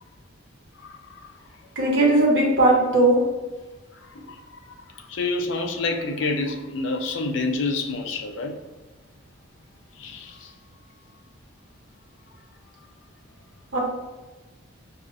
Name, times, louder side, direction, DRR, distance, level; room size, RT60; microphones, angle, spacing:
voice 1, 0.8-1.3 1.8-2.0 4.0-4.6 4.9-8.6 10.0-10.5, left 3 dB, 60° left, 0.4 m, -28 dB
voice 2, 1.8-3.2 13.7-13.8, right 2 dB, 55° right, 1.0 m, -18 dB
4.7 x 2.4 x 2.6 m
head